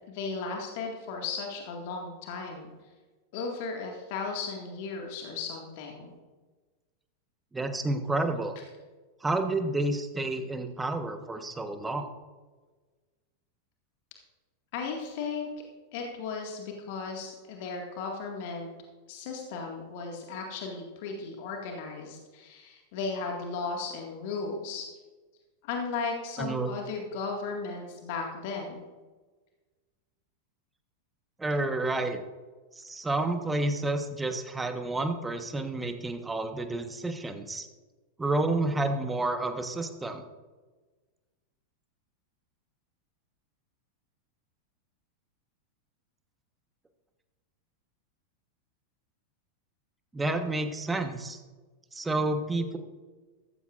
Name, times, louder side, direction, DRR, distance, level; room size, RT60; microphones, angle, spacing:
voice 1, 0.1-2.7 3.3-6.1 14.7-15.5 15.9-18.7 19.1-24.9 25.6-28.8, left 4 dB, 50° left, 1 dB, 1.9 m, -35 dB
voice 2, 7.5-8.5 9.2-12.0 26.4-26.7 31.4-32.2 32.7-37.7 38.2-40.2 50.1-51.4 51.9-52.8, right 2 dB, 10° right, 7 dB, 1.2 m, -30 dB
15.0 x 14.5 x 2.5 m, 1.3 s
figure-of-eight pair, 90°, 0 cm